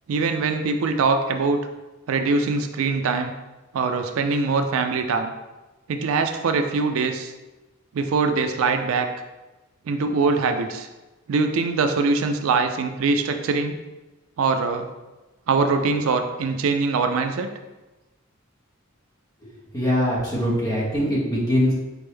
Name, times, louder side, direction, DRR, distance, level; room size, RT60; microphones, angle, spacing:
voice 1, 0.1-1.7 2.1-3.3 3.7-5.3 5.9-7.3 7.9-9.1 9.9-10.9 11.3-13.7 14.4-14.9 15.5-17.5, right 4 dB, 75° right, 7 dB, 0.4 m, -22 dB
voice 2, 19.4-21.7, equal, 20° left, -7 dB, 1.3 m, -23 dB
4.3 x 3.5 x 3.3 m, 1.1 s
head